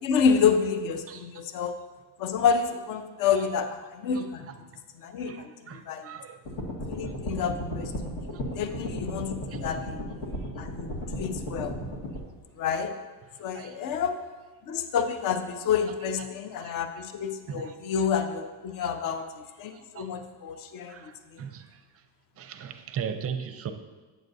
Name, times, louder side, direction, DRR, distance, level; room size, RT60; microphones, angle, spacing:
voice 1, 0.0-1.7 2.2-4.5 5.0-6.1 6.9-10.0 10.6-11.8 12.6-12.9 13.4-14.2 14.7-21.0 21.3-21.4, left 6 dB, 45° left, 8 dB, 0.6 m, -29 dB
voice 2, 5.2-6.4 9.5-9.6 13.5-13.8 15.9-16.3 16.9-17.0 17.5-17.7 19.0-19.1 19.9-20.1 20.9-21.7 22.4-23.7, right 7 dB, 30° right, 8 dB, 0.5 m, -38 dB
sound 1, 6.4-12.2, equal, 65° left, 1.7 m, -35 dB
8.9 x 7.4 x 2.7 m, 1.3 s
cardioid pair, 125°, 46 cm